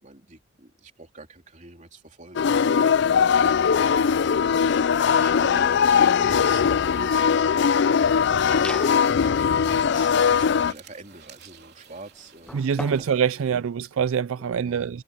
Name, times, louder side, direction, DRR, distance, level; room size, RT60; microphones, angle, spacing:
voice 1, 0.0-13.4 14.4-14.9, right 2 dB, 35° right, 3.5 m, -46 dB
sound 1, 2.4-10.7, left 7 dB, 55° left, 0.3 m, -20 dB
sound 2, 7.9-13.6, right 8 dB, 50° right, 3.6 m, -51 dB
sound 3, 8.5-9.1 9.6-13.2, left 1 dB, 5° left, 0.6 m, -40 dB
voice 2, 12.5-15.0, right 7 dB, 75° right, 0.4 m, -25 dB
head